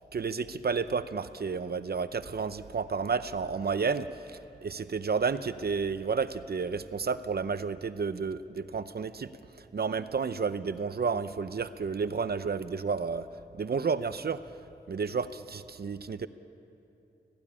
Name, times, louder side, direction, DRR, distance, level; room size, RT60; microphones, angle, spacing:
voice 1, 0.1-9.3 9.7-13.3 13.5-14.4 14.9-16.3, right 5 dB, 70° right, 12 dB, 0.6 m, -31 dB
19.0 x 15.0 x 10.0 m, 2.8 s
wide cardioid pair, 90°, 17 cm